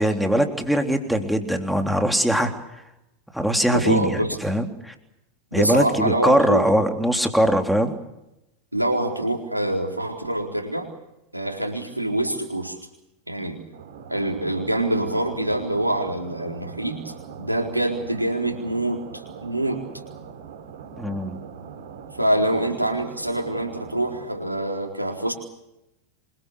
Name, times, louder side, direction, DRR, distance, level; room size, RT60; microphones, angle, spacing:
voice 1, 0.0-2.5 3.3-4.9 5.5-8.0 21.0-21.4, equal, ahead, 4 dB, 3.6 m, -21 dB
voice 2, 3.7-4.4 5.5-6.7 8.7-10.9 11.3-12.8 13.3-13.6 14.1-19.8 22.2-25.3, right 1 dB, 85° right, 0 dB, 4.2 m, -25 dB
sound 1, 13.7-24.2, right 7 dB, 55° right, 5.3 m, -41 dB
28.0 x 24.0 x 6.9 m, 0.87 s
figure-of-eight pair, 90°, 0 cm